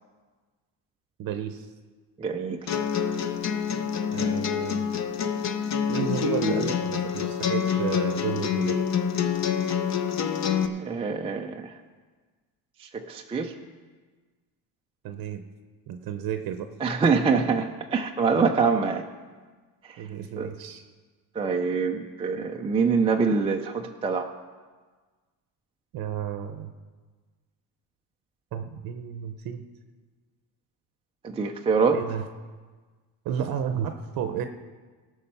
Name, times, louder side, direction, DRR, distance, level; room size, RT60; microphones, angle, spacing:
voice 1, 1.2-1.7 4.1-4.9 5.9-8.8 15.0-15.4 15.9-16.7 20.0-20.8 25.9-26.7 28.5-29.6 31.9-32.2 33.2-34.5, right 9 dB, 55° right, 8 dB, 0.7 m, -32 dB
voice 2, 2.2-2.7 10.8-11.7 12.8-13.5 16.8-19.0 19.9-20.0 20.4-20.5 21.4-24.3 31.2-32.0, right 5 dB, 15° right, 2 dB, 0.3 m, -25 dB
sound 1, 2.7-10.7, left 8 dB, 40° left, 0.7 m, -27 dB
18.5 x 6.4 x 5.4 m, 1.4 s
cardioid pair, 160°, 42 cm